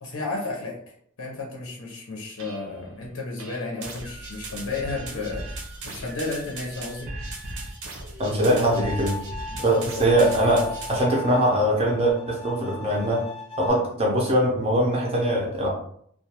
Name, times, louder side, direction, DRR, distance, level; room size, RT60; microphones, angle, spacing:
voice 1, 0.0-7.1 9.5-10.0, left 3 dB, 75° left, -2 dB, 0.7 m, -33 dB
sound 1, 2.4-2.8 3.4-11.0, right 2 dB, 75° right, 0.7 m, -38 dB
voice 2, 8.2-9.1 9.6-13.2 13.6-15.7, right 1 dB, 25° right, -2 dB, 0.5 m, -22 dB
Bowed string instrument, 8.7-13.7, left 4 dB, 25° left, 0.4 m, -38 dB
2.4 x 2.3 x 2.8 m, 0.65 s
head